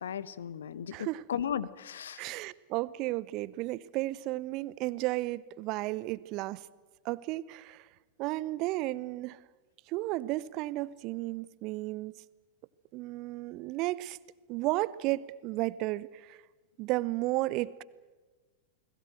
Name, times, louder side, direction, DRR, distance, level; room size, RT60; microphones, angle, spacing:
voice 1, 0.0-2.2, left 9 dB, 65° left, 19 dB, 1.0 m, -36 dB
voice 2, 0.9-1.2 2.2-6.6 7.0-7.9 8.2-9.4 9.9-12.1 12.9-14.2 14.5-16.4 16.8-17.8, right 18 dB, 40° right, 20 dB, 0.8 m, -33 dB
30.0 x 20.5 x 7.8 m, 1.3 s
figure-of-eight pair, 90°, 0 cm